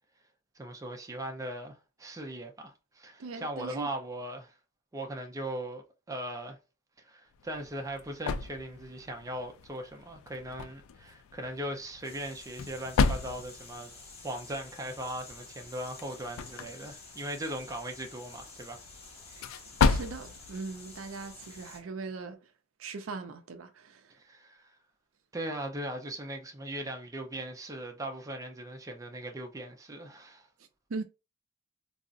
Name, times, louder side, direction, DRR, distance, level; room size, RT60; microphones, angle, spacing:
voice 1, 0.6-4.5 4.9-6.6 7.0-13.9 14.2-18.8 24.2-24.7 25.3-30.5, right 1 dB, 15° right, 0.4 m, -39 dB
voice 2, 3.2-3.9 19.3-19.4 19.8-22.4 22.8-24.1 30.9-31.0, right 4 dB, 75° right, 0.5 m, -40 dB
sound 1, 7.3-21.9, left 5 dB, 80° left, 0.3 m, -35 dB
sound 2, 12.0-21.8, left 3 dB, 30° left, 1.2 m, -50 dB
3.7 x 2.0 x 2.4 m
head